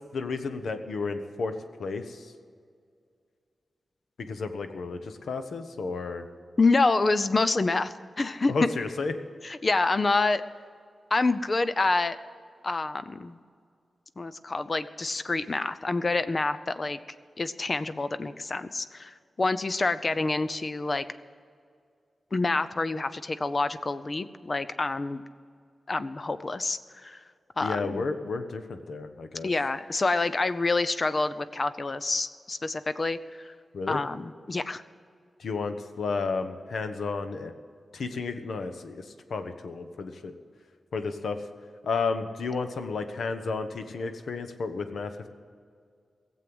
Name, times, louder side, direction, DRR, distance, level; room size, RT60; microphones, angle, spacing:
voice 1, 0.1-2.3 4.2-6.3 8.5-9.1 27.6-29.5 33.7-34.0 35.4-37.5 37.9-39.0 39.3-40.3 40.9-41.4 41.8-45.3, left 4 dB, 85° left, 8 dB, 1.0 m, -32 dB
voice 2, 6.6-8.7 9.4-10.4 11.1-12.2 12.6-13.4 14.2-17.0 17.4-21.0 22.3-25.2 25.9-27.2 27.6-28.0 29.4-33.2 33.4-33.5 33.9-34.8, left 3 dB, 35° left, 13 dB, 0.6 m, -27 dB
17.5 x 7.6 x 7.8 m, 2.2 s
wide cardioid pair, 125°, 0 cm